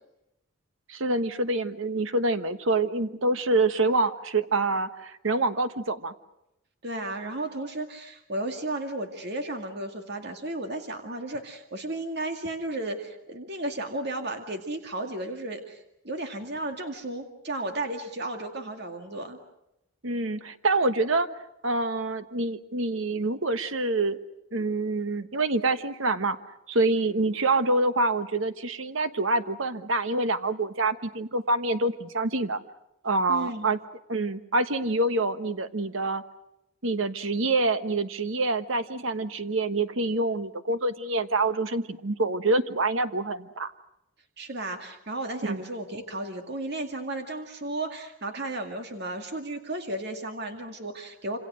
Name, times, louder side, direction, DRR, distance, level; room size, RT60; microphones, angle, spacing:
voice 1, 0.9-6.1 20.0-21.3 21.6-24.2 24.5-26.4 26.7-32.6 33.0-33.8 34.1-36.2 36.8-43.7 45.4-45.6, right 2 dB, 65° right, 10 dB, 1.3 m, -26 dB
voice 2, 6.8-19.4 33.3-33.7 44.4-51.4, right 2 dB, 50° right, 5 dB, 2.2 m, -34 dB
27.0 x 27.0 x 6.3 m, 0.85 s
head